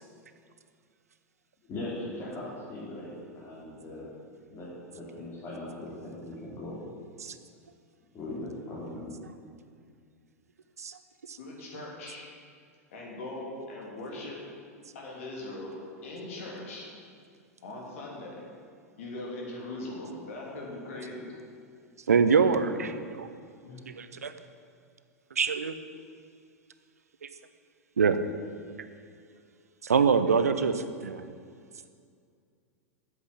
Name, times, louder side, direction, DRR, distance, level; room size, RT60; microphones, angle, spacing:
voice 1, 1.7-4.1 4.5-4.7 4.9-6.8 8.1-9.1 22.4-22.6, left 2 dB, 30° left, -8 dB, 3.2 m, -39 dB
voice 2, 11.4-12.3 12.9-14.5 14.9-15.7 16.0-16.9 17.6-18.5 19.0-21.4 22.3-22.5 23.6-23.9, left 2 dB, 60° left, -2 dB, 3.1 m, -40 dB
voice 3, 22.1-22.9 23.2-23.3 23.9-24.3 25.4-25.8 27.2-27.3 28.0-28.2 29.8-31.2, right 5 dB, 75° right, 10 dB, 0.7 m, -24 dB
9.0 x 8.1 x 8.4 m, 2.3 s
figure-of-eight pair, 90°, 8 cm